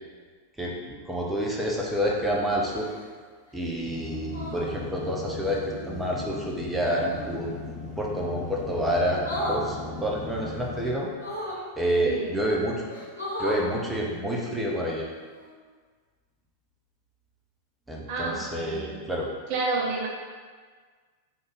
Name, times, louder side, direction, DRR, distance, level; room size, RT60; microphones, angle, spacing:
voice 1, 0.6-2.9 3.5-7.5 8.0-9.2 9.5-11.1 11.8-12.9 13.4-15.1 17.9-19.3, equal, 10° right, -3 dB, 0.8 m, -28 dB
sound 1, 2.6-3.1 4.3-4.7 6.9-7.3 9.2-9.6 11.1-11.6 12.4-12.5 12.9-13.6 15.3-15.5, left 1 dB, 80° left, 1.2 m, -34 dB
sound 2, 3.8-10.9, left 3 dB, 30° left, 0.6 m, -38 dB
voice 2, 12.0-12.4 18.1-19.0 19.5-20.1, right 3 dB, 45° right, -1 dB, 0.5 m, -30 dB
3.8 x 3.3 x 3.9 m, 1.5 s
figure-of-eight pair, 90°, 0 cm